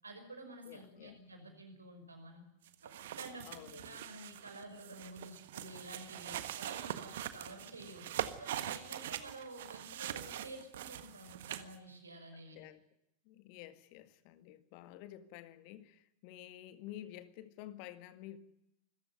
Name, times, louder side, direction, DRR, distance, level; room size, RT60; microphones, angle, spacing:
voice 1, 0.0-2.4 2.8-12.6, right 2 dB, 80° right, 5 dB, 5.8 m, -50 dB
voice 2, 0.6-1.2 3.4-4.1 12.6-12.8 13.3-18.4, left 13 dB, 45° left, 12 dB, 1.8 m, -51 dB
sound 1, 2.7-11.7, right 12 dB, 55° right, 1.6 m, -43 dB
25.5 x 15.0 x 9.2 m, 0.82 s
figure-of-eight pair, 90°, 0 cm